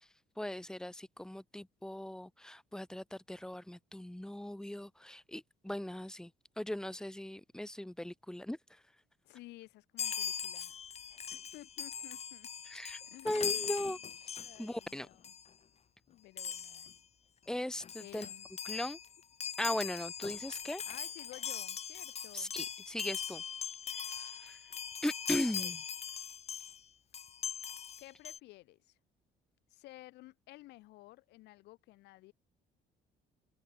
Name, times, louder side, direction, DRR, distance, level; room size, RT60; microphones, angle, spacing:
voice 1, 0.4-6.3 6.6-8.6 12.7-13.0 13.2-14.0 14.6-15.1 17.5-18.3 18.7-19.0 19.6-20.8 22.3-23.4 24.1-24.6 25.0-25.8, left 1 dB, 5° left, 2.6 m, -38 dB
voice 2, 9.2-10.8 11.3-12.5 13.0-13.9 14.4-15.3 16.1-17.0 18.0-18.5 20.9-22.5 25.4-25.7 28.0-29.0 29.7-32.3, left 18 dB, 85° left, 6.1 m, -54 dB
Chime, 10.0-14.9 15.2-15.5 16.4-17.0 17.5-17.6 17.8-26.8 27.1-28.4, left 7 dB, 40° left, 1.5 m, -40 dB
cardioid pair, 110°, 17 cm